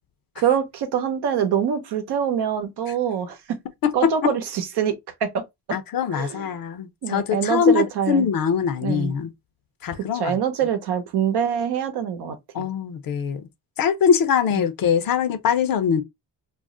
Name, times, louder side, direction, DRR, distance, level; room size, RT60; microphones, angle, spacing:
voice 1, 0.4-3.6 3.9-4.9 5.2-5.4 6.1-6.6 7.0-8.3 8.8-9.1 10.1-12.7 14.5-14.6, right 8 dB, 85° right, 0.8 m, -24 dB
voice 2, 3.8-4.3 5.7-9.3 9.8-10.4 12.5-13.4 13.8-16.0, left 7 dB, 65° left, 0.6 m, -22 dB
2.5 x 2.0 x 3.5 m
cardioid pair, 70°, 38 cm